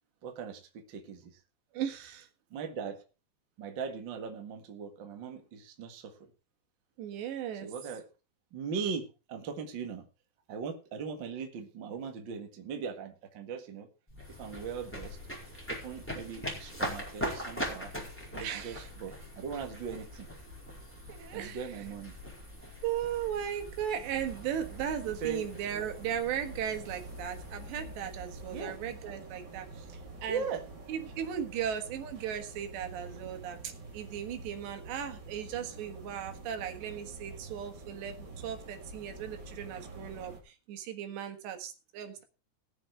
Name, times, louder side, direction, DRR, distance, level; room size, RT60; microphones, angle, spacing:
voice 1, 0.2-1.3 2.5-3.0 3.6-6.1 7.6-8.0 8.5-10.1 10.5-13.9 14.4-15.2 15.7-17.9 18.3-20.3 21.3-22.1 25.2-25.4 28.5-28.8 30.3-30.6 32.9-33.3, right 6 dB, 45° right, 4 dB, 1.5 m, -39 dB
voice 2, 1.7-2.3 7.0-7.7 18.4-18.9 21.1-21.7 22.8-29.9 30.2-30.4 30.9-33.6 33.9-42.2, right 9 dB, 80° right, 6 dB, 3.8 m, -37 dB
sound 1, 14.1-29.2, equal, 5° left, 4.2 m, -42 dB
sound 2, 24.0-40.4, right 2 dB, 30° right, 2.6 m, -47 dB
18.5 x 7.1 x 4.6 m, 0.31 s
omnidirectional pair, 4.9 m